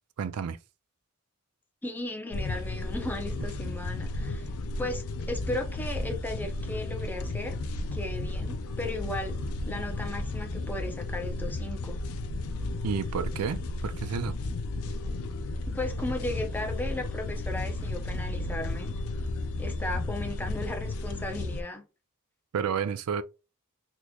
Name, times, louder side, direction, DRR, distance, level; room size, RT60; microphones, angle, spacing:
voice 1, 0.2-0.6 12.8-14.4 22.5-23.2, right 6 dB, 85° right, 0.4 m, -31 dB
voice 2, 1.8-4.5 4.8-7.6 7.9-9.4 9.7-12.0 15.7-18.9 19.6-21.9, left 1 dB, 10° left, 0.6 m, -36 dB
sound 1, 2.3-21.6, left 2 dB, 85° left, 0.4 m, -33 dB
3.5 x 3.0 x 2.3 m
head